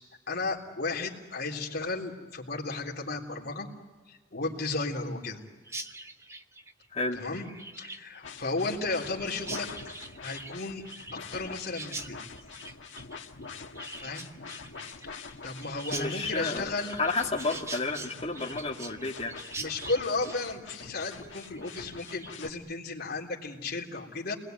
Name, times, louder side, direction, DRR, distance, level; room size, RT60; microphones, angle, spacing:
voice 1, 0.3-3.7 4.1-5.4 7.1-7.5 7.8-9.7 10.2-10.8 11.1-12.2 14.0-14.3 15.0-17.0 19.6-24.3, left 3 dB, 50° left, -1 dB, 3.6 m, -34 dB
Chirp tweet, 5.7-22.5, right 2 dB, 15° right, 0.9 m, -44 dB
voice 2, 6.9-7.2 15.9-16.6 17.0-19.3, left 3 dB, 30° left, -1 dB, 2.5 m, -31 dB
sound 1, 8.2-22.5, left 4 dB, 65° left, 1.6 m, -45 dB
29.0 x 21.0 x 9.4 m, 1.4 s
head